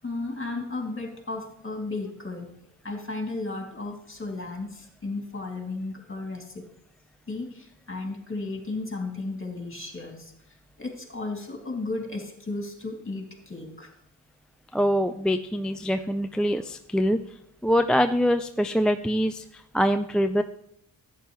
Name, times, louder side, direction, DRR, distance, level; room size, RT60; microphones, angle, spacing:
voice 1, 0.0-2.6 2.8-6.7 7.3-13.9, left 2 dB, 25° left, 2 dB, 2.6 m, -34 dB
voice 2, 14.7-17.2 17.6-20.4, equal, ahead, 8 dB, 0.3 m, -24 dB
11.5 x 9.2 x 3.1 m, 0.74 s
cardioid pair, 55°, 46 cm